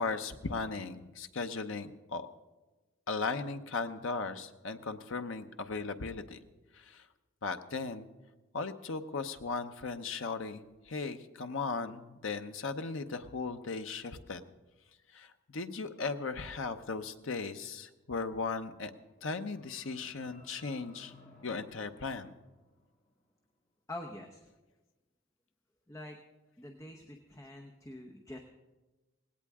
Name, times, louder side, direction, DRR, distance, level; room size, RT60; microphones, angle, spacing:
voice 1, 0.0-2.3 3.1-6.4 6.7-7.1 7.4-8.1 8.5-14.4 15.1-18.9 19.2-21.1 21.4-22.3, left 4 dB, 70° left, 8 dB, 0.8 m, -37 dB
sound 1, 19.0-23.1, left 2 dB, 35° left, 3.8 m, -59 dB
voice 2, 23.9-24.4 25.9-26.2 26.6-28.4, left 1 dB, 15° left, 2 dB, 0.8 m, -45 dB
18.5 x 17.0 x 3.6 m, 1.2 s
head